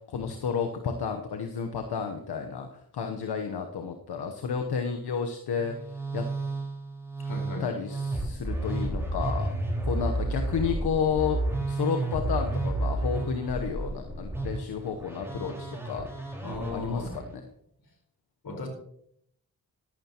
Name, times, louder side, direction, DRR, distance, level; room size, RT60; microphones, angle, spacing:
voice 1, 0.1-5.7 6.1-6.3 7.6-9.5 9.8-11.4 11.7-16.1 16.7-17.2, left 6 dB, 85° left, 4 dB, 1.0 m, -31 dB
Musical instrument, 5.5-17.3, right 2 dB, 5° right, 4.4 m, -32 dB
voice 2, 7.2-7.7 16.4-17.2 18.4-18.7, left 2 dB, 65° left, 2 dB, 4.6 m, -36 dB
13.5 x 11.5 x 2.9 m, 0.71 s
cardioid pair, 60°, 38 cm